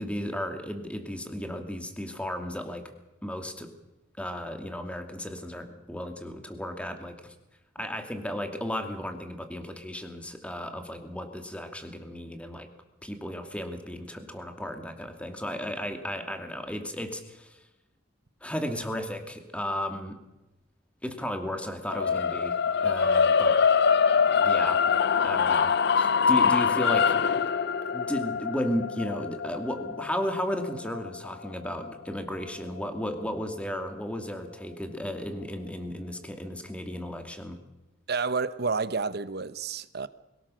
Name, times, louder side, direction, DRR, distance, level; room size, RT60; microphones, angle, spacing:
voice 1, 0.0-2.8 3.2-3.7 4.2-7.3 7.7-12.7 13.0-17.6 18.4-20.2 21.0-22.6 22.8-23.6 24.4-24.9 25.2-27.1 27.9-37.6, equal, 5° left, 2.5 m, -34 dB
sound 1, 21.9-32.1, left 6 dB, 60° left, 0.6 m, -24 dB
voice 2, 38.1-40.1, right 4 dB, 55° right, 1.0 m, -30 dB
22.5 x 18.5 x 6.4 m
head